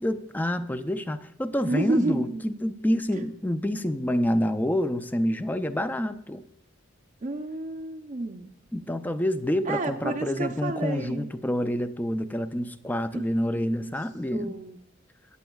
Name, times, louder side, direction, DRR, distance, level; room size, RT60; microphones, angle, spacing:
voice 1, 0.0-6.4 8.7-14.6, equal, 10° left, 10 dB, 0.5 m, -27 dB
voice 2, 1.7-2.4 3.1-3.2 7.2-8.5 9.7-11.3 13.1-13.2 13.5-13.9 14.3-14.8, right 2 dB, 40° right, 4 dB, 0.6 m, -30 dB
16.5 x 9.3 x 2.3 m, 0.80 s
head